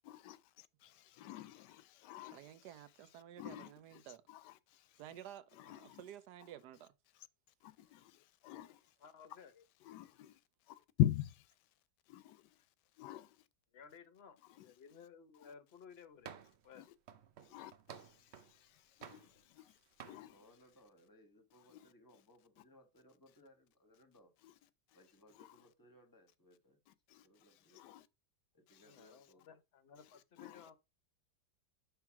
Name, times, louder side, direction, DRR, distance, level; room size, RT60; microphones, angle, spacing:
voice 1, 0.0-2.7 3.4-5.0 5.5-6.0 7.6-8.9 9.8-10.4 10.7-11.5 12.1-12.6 13.0-13.4 14.4-14.7 15.4-15.5 16.7-16.9 17.4-20.4 21.7-21.9 24.4-24.5 25.3-25.6 27.1-27.3 27.7-28.1 28.7-28.8 30.0-30.7, left 14 dB, 85° left, 1.2 m, -43 dB
voice 2, 2.3-4.2 5.0-6.9, right 11 dB, 75° right, 1.2 m, -53 dB
voice 3, 9.0-9.6 13.7-16.9 28.8-30.8, left 6 dB, 50° left, 0.8 m, -58 dB
sound 1, 16.2-16.7 17.1-18.6 19.0-19.7 20.0-20.2, right 8 dB, 55° right, 0.7 m, -53 dB
voice 4, 20.2-24.3 24.9-26.8 27.2-27.8 28.5-29.5, equal, 15° left, 1.0 m, -65 dB
5.7 x 3.7 x 5.8 m
omnidirectional pair, 1.8 m